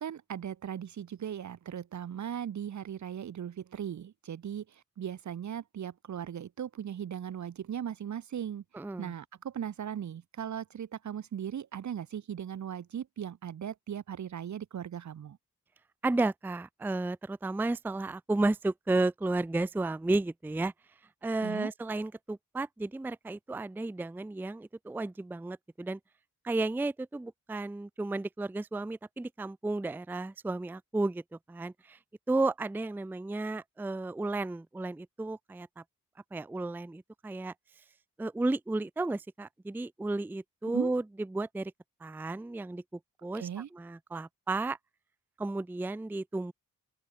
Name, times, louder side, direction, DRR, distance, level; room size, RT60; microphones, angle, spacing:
voice 1, 0.0-4.6 5.0-8.6 9.0-15.4 21.4-21.7 40.6-40.9 43.4-43.7, right 9 dB, 55° right, 0.8 m, -38 dB
voice 2, 8.7-9.1 16.0-20.7 21.2-26.0 26.4-32.0 32.3-35.8 36.3-37.5 38.2-41.7 42.0-44.8 45.4-46.5, right 2 dB, 5° right, 0.5 m, -33 dB
open air
cardioid pair, 60°, 34 cm